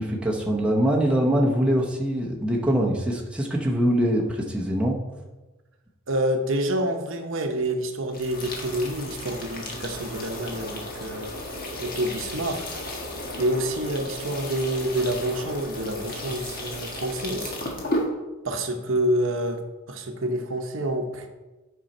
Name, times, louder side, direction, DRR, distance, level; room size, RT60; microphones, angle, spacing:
voice 1, 0.0-5.0, equal, 5° right, -3 dB, 0.9 m, -23 dB
voice 2, 6.1-11.3 11.8-12.8 13.4-17.5 18.4-19.6 19.9-21.3, right 1 dB, 65° right, 5 dB, 0.9 m, -27 dB
sound 1, 8.1-18.1, left 1 dB, 40° left, 1.4 m, -34 dB
9.1 x 5.5 x 4.3 m, 1.1 s
head